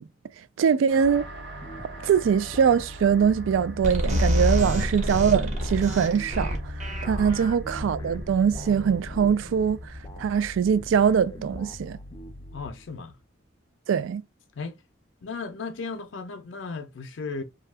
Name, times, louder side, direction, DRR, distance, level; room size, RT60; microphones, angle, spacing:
voice 1, 0.6-1.2 2.0-6.6 7.0-9.8 10.2-12.0 13.9-14.2, right 7 dB, 90° right, 0.3 m, -22 dB
sound 1, 0.9-11.9, equal, 65° right, 1.1 m, -40 dB
sound 2, 1.0-13.2, left 1 dB, 20° left, 0.3 m, -43 dB
sound 3, 3.8-10.3, equal, 35° right, 0.9 m, -29 dB
voice 2, 12.5-13.2 14.5-14.8 15.2-17.4, left 4 dB, 80° left, 0.5 m, -35 dB
2.7 x 2.3 x 3.2 m
head